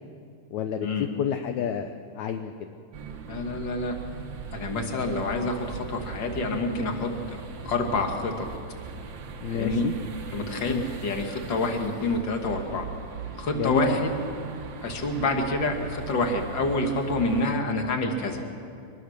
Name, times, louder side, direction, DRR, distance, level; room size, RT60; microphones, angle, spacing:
voice 1, 0.5-0.9 1.2-2.7 9.4-9.9 10.7-10.9 13.5-14.0, left 8 dB, 75° left, 7 dB, 1.7 m, -29 dB
sound 1, 2.9-17.5, right 5 dB, 85° right, 1.0 m, -39 dB
voice 2, 3.3-4.0 4.5-7.4 7.6-8.5 9.5-9.8 10.3-12.9 13.4-14.2 14.8-18.4, left 2 dB, 40° left, 3 dB, 2.1 m, -27 dB
24.5 x 21.0 x 6.6 m, 2.4 s
omnidirectional pair, 4.1 m